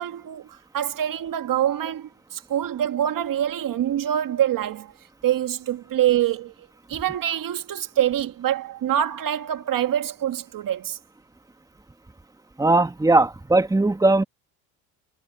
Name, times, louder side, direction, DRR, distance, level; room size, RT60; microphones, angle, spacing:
voice 1, 0.0-4.9 5.2-6.5 6.9-11.0, right 11 dB, 50° right, 1.9 m, -25 dB
voice 2, 12.6-14.2, right 2 dB, 10° right, 1.9 m, -19 dB
supercardioid pair, 90°, 44 cm